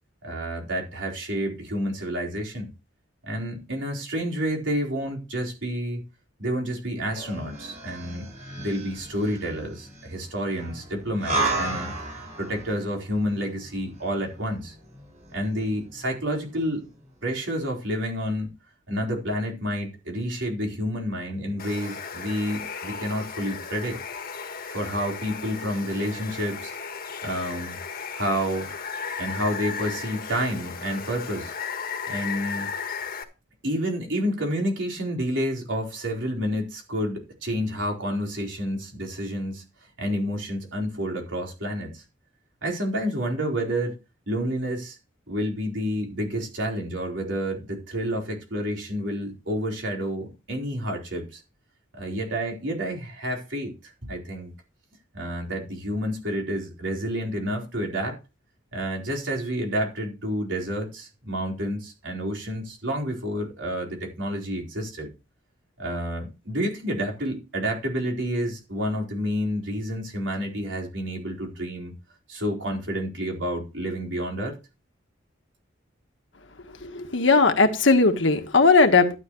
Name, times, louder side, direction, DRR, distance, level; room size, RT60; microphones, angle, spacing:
voice 1, 0.2-2.7 3.2-6.0 6.4-8.3 8.6-14.7 15.3-16.8 17.2-18.5 18.9-24.0 24.7-26.7 27.2-27.8 28.1-28.7 29.2-31.5 32.1-32.7 33.6-39.6 40.0-42.0 42.6-44.0 44.3-45.0 45.3-51.4 51.9-54.5 55.1-58.2 58.7-65.1 65.8-71.9 72.3-74.6, equal, 65° right, 0 dB, 4.3 m, -29 dB
sound 1, 7.1-16.6 16.9-17.0, right 2 dB, 35° right, 7.5 m, -34 dB
Water, 21.6-33.2, left 6 dB, 50° left, 1.6 m, -35 dB
voice 2, 76.8-79.2, left 3 dB, 70° left, 6 dB, 1.5 m, -18 dB
12.0 x 9.6 x 3.2 m, 0.29 s
head